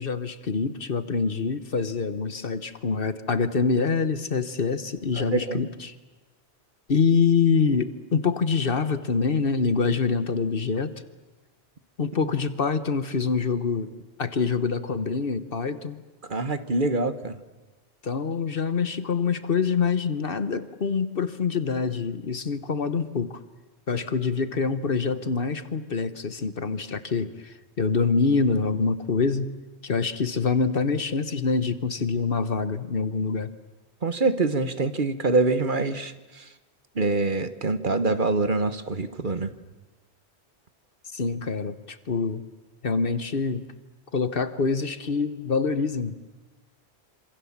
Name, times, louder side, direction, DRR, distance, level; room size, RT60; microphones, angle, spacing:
voice 1, 0.0-5.9 6.9-10.9 12.0-13.9 14.2-16.0 18.0-23.4 23.9-29.5 29.8-33.5 41.1-42.4 42.8-43.6 44.1-46.4, left 5 dB, 55° left, 12 dB, 1.4 m, -25 dB
voice 2, 5.1-5.6 16.3-17.4 34.0-36.5 36.9-39.5, right 3 dB, 50° right, 11 dB, 1.4 m, -25 dB
27.0 x 26.5 x 7.4 m, 1.2 s
omnidirectional pair, 1.1 m